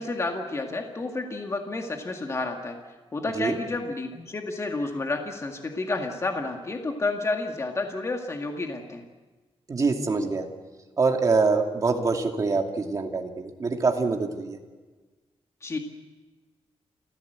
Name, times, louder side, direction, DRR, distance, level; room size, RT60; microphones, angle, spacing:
voice 1, 0.0-2.8 3.1-9.0 15.6-15.8, left 2 dB, 30° left, 3 dB, 2.0 m, -30 dB
voice 2, 9.7-10.4 11.0-14.6, right 4 dB, 35° right, 3 dB, 2.5 m, -25 dB
28.5 x 15.5 x 8.0 m, 1.3 s
wide cardioid pair, 160°, 10 cm